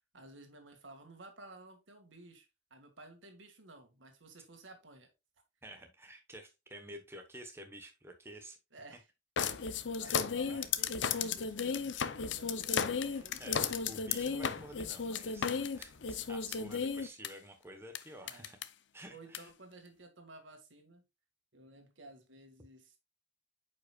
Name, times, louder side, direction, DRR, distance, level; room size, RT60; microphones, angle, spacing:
voice 1, 0.1-5.1 8.7-9.1 9.4-13.7 18.2-18.5 19.1-21.0 21.5-23.0, right 2 dB, 90° right, 1.8 m, -55 dB
voice 2, 5.6-8.6 10.0-10.6 13.1-18.6 18.9-19.5, right 1 dB, 15° right, 1.0 m, -51 dB
sound 1, 9.4-17.3 17.9-18.0 18.3-18.6 19.3-19.4, left 6 dB, 70° left, 0.6 m, -34 dB
8.9 x 5.3 x 2.3 m
head